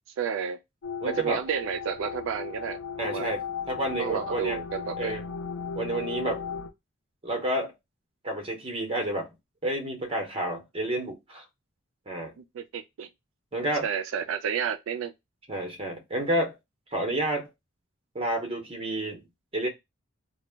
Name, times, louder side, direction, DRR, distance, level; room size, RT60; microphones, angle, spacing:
voice 1, 0.2-0.6 1.1-3.3 4.0-5.1 12.4-13.1 13.8-15.1, right 7 dB, 80° right, 0.3 m, -31 dB
sound 1, 0.8-6.7, left 6 dB, 80° left, 0.4 m, -36 dB
voice 2, 1.0-1.4 3.0-4.6 5.0-5.2 5.8-6.4 7.2-7.7 8.2-9.3 9.6-11.4 12.1-12.3 13.5-13.9 15.5-16.6 16.9-17.5 18.1-19.2 19.5-19.7, right 1 dB, 30° right, 0.7 m, -30 dB
2.1 x 2.0 x 3.2 m
head